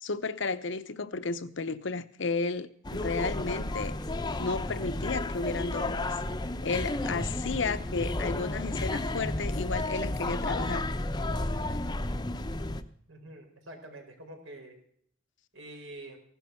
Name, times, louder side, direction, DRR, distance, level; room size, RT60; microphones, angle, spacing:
voice 1, 0.0-3.9 4.4-6.1 6.6-10.8, left 4 dB, 65° left, 0.8 m, -33 dB
sound 1, 2.8-12.8, left 2 dB, 20° left, 0.7 m, -32 dB
voice 2, 13.1-14.7 15.5-16.2, right 1 dB, 80° right, 4.5 m, -46 dB
16.5 x 11.5 x 5.8 m
head